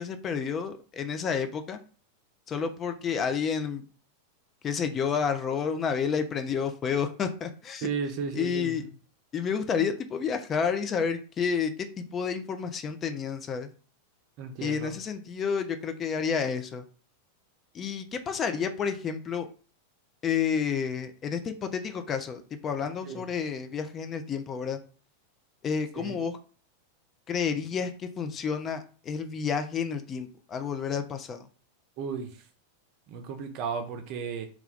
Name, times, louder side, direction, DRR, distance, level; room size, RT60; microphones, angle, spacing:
voice 1, 0.0-1.8 2.5-3.8 4.6-7.9 8.3-8.8 9.3-13.7 14.6-16.8 17.7-19.5 20.2-24.8 25.6-26.4 27.3-31.5, left 6 dB, 25° left, 7 dB, 0.4 m, -30 dB
voice 2, 7.8-8.9 14.4-14.9 23.1-23.2 26.0-26.2 32.0-32.3 33.1-34.5, right 5 dB, 40° right, 5 dB, 0.5 m, -34 dB
2.3 x 2.2 x 3.4 m, 0.39 s
figure-of-eight pair, 90°, 0 cm